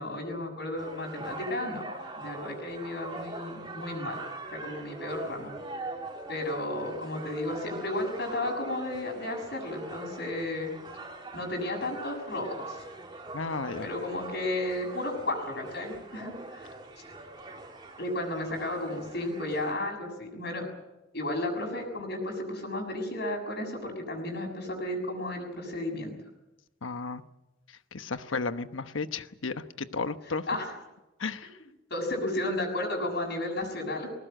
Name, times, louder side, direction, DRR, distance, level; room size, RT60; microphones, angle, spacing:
voice 1, 0.0-4.2 4.5-5.5 6.3-10.7 11.3-12.8 13.8-16.7 18.0-20.6 21.1-26.1 30.5-30.7 31.9-34.1, left 1 dB, 55° left, 2 dB, 6.8 m, -33 dB
sound 1, 0.8-19.7, right 2 dB, 25° right, 2.9 m, -43 dB
voice 2, 13.3-13.9 26.8-27.2 27.9-29.6 29.9-30.4 31.2-31.5, left 4 dB, 85° left, 10 dB, 1.1 m, -33 dB
21.0 x 19.0 x 9.1 m, 1.0 s
head